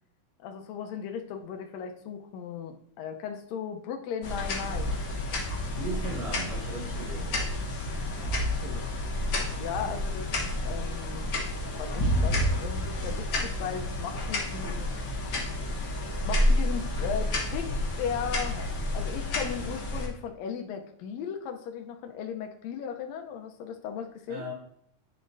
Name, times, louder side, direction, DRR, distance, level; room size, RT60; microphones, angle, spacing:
voice 1, 0.4-4.9 7.8-8.8 9.6-10.3 10.6-11.3 11.8-14.9 16.3-18.6 18.9-24.5, left 7 dB, 70° left, 4 dB, 1.8 m, -37 dB
sound 1, 4.2-20.1, left 1 dB, 55° left, 1.3 m, -30 dB
voice 2, 5.7-7.3 24.3-24.5, right 2 dB, 65° right, 1 dB, 1.9 m, -37 dB
10.5 x 5.1 x 2.6 m, 0.68 s
omnidirectional pair, 3.7 m